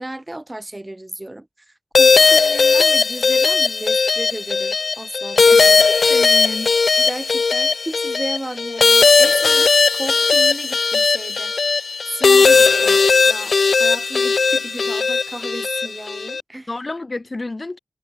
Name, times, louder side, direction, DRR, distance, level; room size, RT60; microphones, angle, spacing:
voice 1, 0.0-1.5 2.0-5.8 7.0-11.5 12.1-16.7, right 1 dB, 20° right, 1.4 m, -33 dB
sound 1, 1.9-16.4, left 4 dB, 90° left, 0.3 m, -16 dB
voice 2, 6.1-6.7 16.7-17.8, left 2 dB, 40° left, 3.9 m, -29 dB
wide cardioid pair, 90°, 0 cm